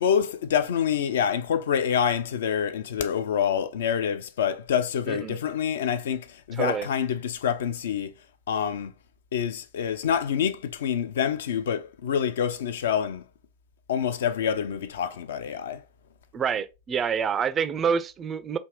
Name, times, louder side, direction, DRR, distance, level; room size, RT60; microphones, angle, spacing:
voice 1, 0.0-8.1 8.5-8.9 9.3-13.3 13.9-15.8, left 8 dB, 60° left, 0.3 m, -26 dB
voice 2, 5.1-5.4 6.6-6.9 16.3-18.6, right 7 dB, 25° right, 0.3 m, -27 dB
3.4 x 2.5 x 3.1 m
figure-of-eight pair, 90°, 0 cm